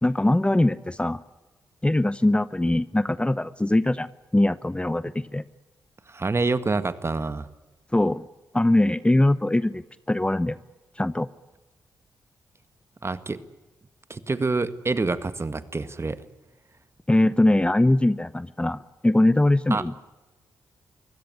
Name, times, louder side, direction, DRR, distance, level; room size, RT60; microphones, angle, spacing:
voice 1, 0.0-1.2 1.8-5.4 7.9-8.3 8.5-10.6 11.0-11.3 17.1-19.9, left 1 dB, 15° left, 16 dB, 0.8 m, -22 dB
voice 2, 6.1-7.5 13.0-13.4 14.1-16.2 19.7-19.8, right 3 dB, 35° right, 12 dB, 1.8 m, -27 dB
24.0 x 16.5 x 9.7 m, 1.2 s
supercardioid pair, 45°, 8 cm